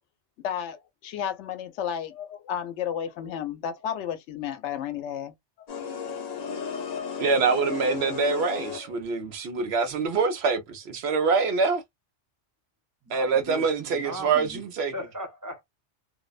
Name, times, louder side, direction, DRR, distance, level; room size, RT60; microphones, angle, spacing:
voice 1, 0.4-5.3 5.7-5.8, left 9 dB, 85° left, 0.9 m, -32 dB
sound 1, 5.7-9.1, left 6 dB, 50° left, 0.6 m, -34 dB
voice 2, 7.2-11.8 13.1-14.9, right 5 dB, 70° right, 0.9 m, -25 dB
voice 3, 13.0-14.6 14.9-15.6, equal, 20° right, 0.5 m, -38 dB
2.6 x 2.1 x 2.3 m
omnidirectional pair, 1.2 m